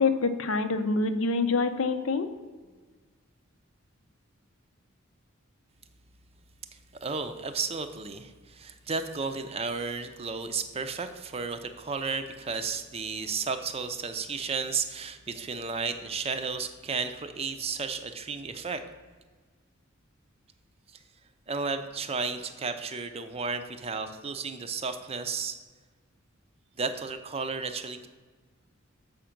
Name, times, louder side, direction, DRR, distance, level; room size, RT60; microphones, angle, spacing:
voice 1, 0.0-2.3, left 4 dB, 70° left, 9 dB, 0.6 m, -26 dB
voice 2, 7.0-18.8 21.5-25.6 26.8-28.1, right 4 dB, 30° right, 9 dB, 0.5 m, -33 dB
7.1 x 5.1 x 5.8 m, 1.4 s
head